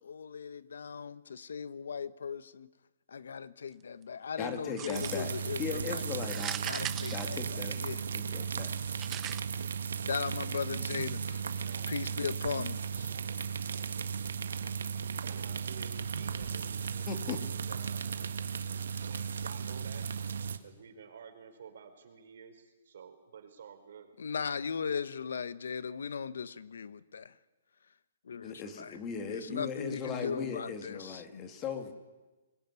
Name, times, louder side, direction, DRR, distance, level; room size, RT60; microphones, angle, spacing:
voice 1, 0.0-2.7 3.1-6.0 6.6-7.4 7.8-8.1 8.4-8.5 10.1-13.1 24.2-27.3 28.3-29.0 29.3-31.5, left 6 dB, 85° left, 16 dB, 1.1 m, -38 dB
voice 2, 4.4-6.6 7.1-7.8 8.1-8.7 17.1-17.4 28.4-31.9, left 6 dB, 20° left, 6 dB, 2.4 m, -38 dB
sound 1, 4.8-5.4 6.2-8.0 9.0-9.4, right 12 dB, 15° right, 0.7 m, -39 dB
sound 2, 4.9-20.6, right 6 dB, 80° right, 1.8 m, -36 dB
voice 3, 11.6-12.4 13.0-20.1 20.6-24.1, right 6 dB, 60° right, 6 dB, 5.0 m, -53 dB
22.5 x 20.0 x 9.7 m, 1.2 s
hypercardioid pair, 165°, 0 cm